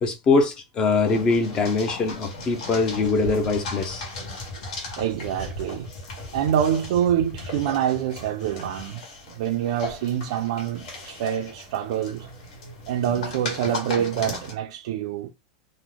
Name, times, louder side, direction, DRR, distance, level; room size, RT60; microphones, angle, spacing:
voice 1, 0.0-4.0, left 4 dB, 20° left, 0.5 m, -22 dB
sound 1, 1.1-14.5, left 2 dB, 70° left, 1.4 m, -37 dB
sound 2, 2.9-8.9, left 1 dB, 55° left, 1.2 m, -40 dB
voice 2, 5.0-5.9 6.3-9.0 9.4-12.3 12.9-15.3, right 10 dB, 60° right, 0.4 m, -26 dB
3.0 x 2.1 x 3.7 m
supercardioid pair, 165°, 4 cm